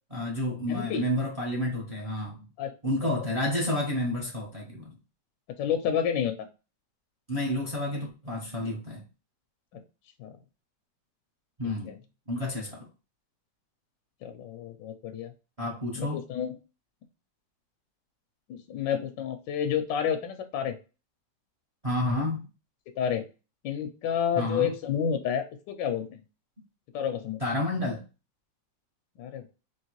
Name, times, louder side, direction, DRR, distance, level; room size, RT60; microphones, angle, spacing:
voice 1, 0.1-2.5 2.8-5.0 7.3-9.0 11.6-11.9 12.3-12.9 15.6-16.2 21.8-22.5 24.4-24.7 27.4-28.0, left 1 dB, 30° right, 0.8 m, -30 dB
voice 2, 0.7-1.0 2.6-2.7 3.0-3.1 5.6-6.3 9.7-9.8 10.2-10.4 11.8-12.0 14.2-15.3 16.0-16.6 18.5-20.8 23.0-23.3 23.6-26.2 26.9-27.4 29.2-29.5, left 8 dB, 85° left, 1.3 m, -30 dB
4.4 x 3.0 x 3.0 m
omnidirectional pair, 1.9 m